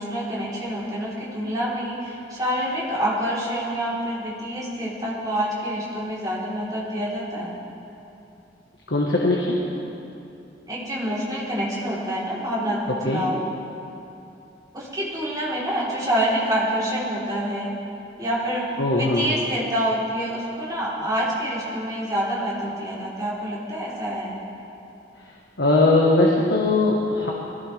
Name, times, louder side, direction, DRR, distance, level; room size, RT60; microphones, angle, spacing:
voice 1, 0.0-7.6 10.7-13.4 14.7-17.8 18.2-24.4, equal, 20° right, -8 dB, 3.8 m, -27 dB
voice 2, 8.9-9.6 13.0-13.2 18.8-19.3 25.6-27.3, left 2 dB, 80° left, -3 dB, 1.5 m, -20 dB
21.0 x 15.5 x 3.5 m, 2.8 s
head